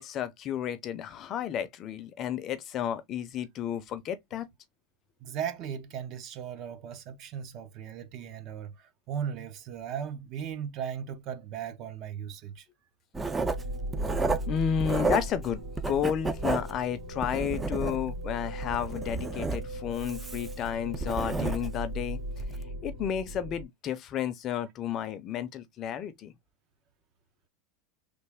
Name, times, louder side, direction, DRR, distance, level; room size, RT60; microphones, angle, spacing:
voice 1, 0.0-4.5 14.5-22.2 22.8-26.3, left 9 dB, 35° left, 0.6 m, -32 dB
voice 2, 5.2-12.7, right 8 dB, 45° right, 0.7 m, -37 dB
Writing, 13.1-15.5 15.8-18.2 18.6-21.9 22.3-22.6, right 3 dB, 15° right, 0.4 m, -32 dB
sound 1, 13.5-23.6, equal, 70° right, 2.0 m, -38 dB
3.3 x 2.4 x 3.4 m
supercardioid pair, 140°, 0 cm